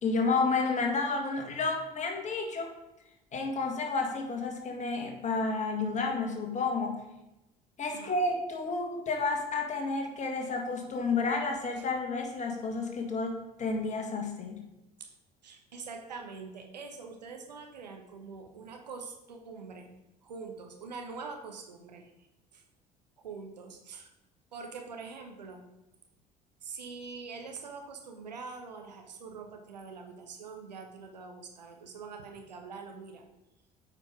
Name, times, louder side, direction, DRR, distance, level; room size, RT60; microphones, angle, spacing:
voice 1, 0.0-2.7 3.3-7.0 7.8-14.7, left 3 dB, 35° left, 2 dB, 1.8 m, -31 dB
voice 2, 15.4-19.9 20.2-22.1 22.5-22.6 23.2-24.1 24.5-25.6 26.6-33.2, right 4 dB, 80° right, 4 dB, 1.0 m, -44 dB
8.7 x 5.2 x 4.9 m, 0.92 s
figure-of-eight pair, 60°, 21 cm